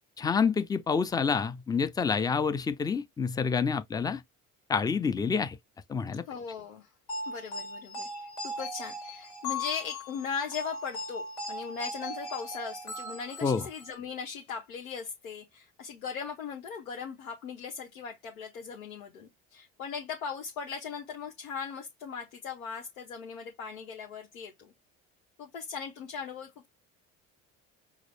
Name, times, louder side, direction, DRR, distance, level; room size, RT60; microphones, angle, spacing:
voice 1, 0.2-4.2 4.7-5.6 5.9-6.3 13.4-13.7, left 5 dB, 10° left, 0.4 m, -28 dB
voice 2, 6.3-6.9 7.3-24.7 25.4-26.7, left 6 dB, 85° left, 0.9 m, -39 dB
sound 1, 7.1-13.9, left 1 dB, 65° left, 1.7 m, -38 dB
4.8 x 2.0 x 3.3 m
hypercardioid pair, 65°, 40 cm